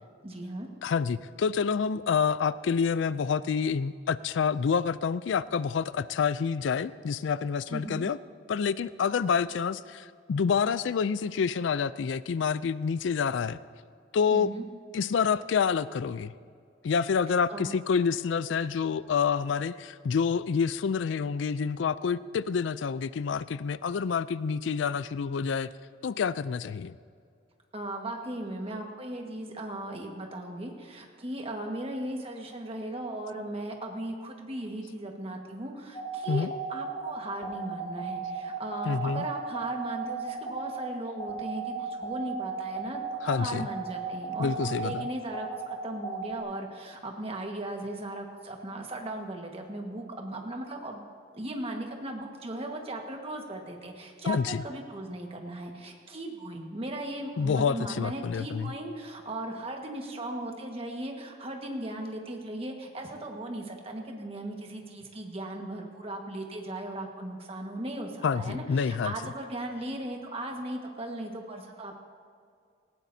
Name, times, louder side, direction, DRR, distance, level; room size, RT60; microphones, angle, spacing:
voice 1, 0.2-0.7 7.7-8.1 14.3-14.7 17.5-17.7 27.7-51.0 51.3-71.9, right 1 dB, 30° right, 2 dB, 1.5 m, -37 dB
voice 2, 0.8-8.2 8.5-13.6 14.1-14.5 14.9-16.3 16.8-25.7 26.0-27.0 36.3-36.5 38.9-39.3 43.2-43.7 44.4-45.1 54.2-54.6 57.4-58.7 68.2-69.1, left 6 dB, 85° left, 16 dB, 0.4 m, -28 dB
sound 1, 35.9-46.4, right 7 dB, 30° left, 3.7 m, -35 dB
18.5 x 17.0 x 2.7 m, 2.2 s
head